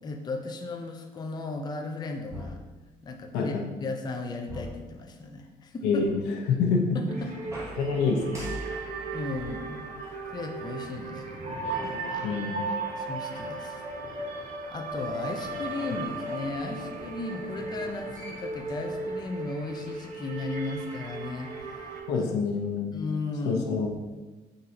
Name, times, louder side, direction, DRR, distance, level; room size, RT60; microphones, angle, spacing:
voice 1, 0.0-2.6 3.0-6.1 6.9-7.6 8.7-9.9 10.3-11.4 11.8-12.3 13.0-13.8 14.7-21.9 22.1-22.3 22.9-23.8, left 3 dB, 25° left, 3 dB, 0.5 m, -36 dB
sound 1, 2.3-3.4 4.5-5.6 7.4-11.0 11.8-11.9 15.2-16.5 17.8-17.9 18.1-19.4, equal, 15° right, 1.3 m, -44 dB
voice 2, 3.3-3.6 5.8-7.0 7.8-8.3 12.2-12.6 22.1-22.9 23.4-23.9, left 5 dB, 85° left, 1 dB, 0.7 m, -26 dB
sound 2, 7.1-22.0, right 3 dB, 45° right, 0.9 m, -36 dB
3.8 x 2.7 x 4.2 m, 1.2 s
cardioid pair, 110°, 17 cm